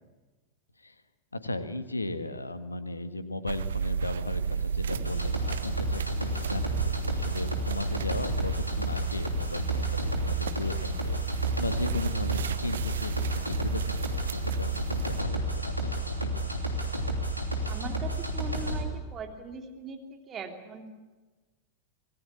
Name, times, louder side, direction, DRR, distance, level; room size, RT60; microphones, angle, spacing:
voice 1, 1.3-15.9 16.2-16.6, left 2 dB, 80° left, 11 dB, 1.5 m, -37 dB
sound 1, 3.5-15.2, right 7 dB, 65° right, 0.9 m, -34 dB
sound 2, 4.9-18.8, right 1 dB, 90° right, 3.0 m, -31 dB
voice 2, 17.7-20.9, right 5 dB, 25° right, 3 dB, 3.2 m, -40 dB
25.5 x 20.0 x 8.5 m, 1.2 s
figure-of-eight pair, 90°, 0 cm